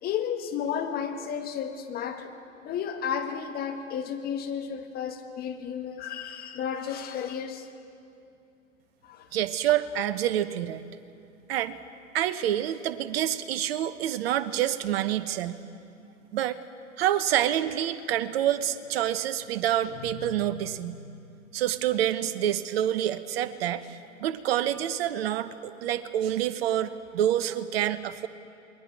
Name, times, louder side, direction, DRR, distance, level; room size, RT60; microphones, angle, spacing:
voice 1, 0.0-2.3 2.6-7.7 9.0-9.3, left 8 dB, 20° left, 5 dB, 1.6 m, -32 dB
voice 2, 9.3-10.8 11.5-11.8 12.1-15.6 16.3-16.6 17.0-21.0 21.5-28.3, right 11 dB, 45° right, 12 dB, 1.1 m, -27 dB
sound 1, 19.8-21.9, left 10 dB, 40° left, 1.1 m, -46 dB
28.5 x 21.5 x 4.7 m, 2.6 s
figure-of-eight pair, 115°, 41 cm